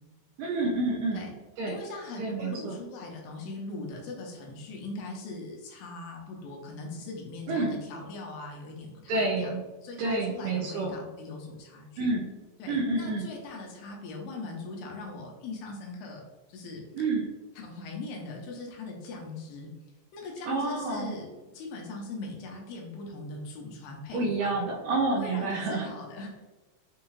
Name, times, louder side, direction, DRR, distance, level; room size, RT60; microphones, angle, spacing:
voice 1, 0.4-1.3 1.6-1.8 2.2-2.8 7.5-7.7 9.1-9.6 10.0-11.0 12.0-12.3 12.7-13.3 16.9-17.3 20.5-21.1 24.1-25.9, right 3 dB, 80° right, -1 dB, 2.0 m, -29 dB
voice 2, 1.7-9.5 9.8-12.1 12.6-16.2 16.5-16.8 17.6-19.7 20.1-24.6 25.1-26.4, left 3 dB, 80° left, 0 dB, 2.4 m, -40 dB
6.3 x 2.4 x 3.0 m, 1.2 s
omnidirectional pair, 4.2 m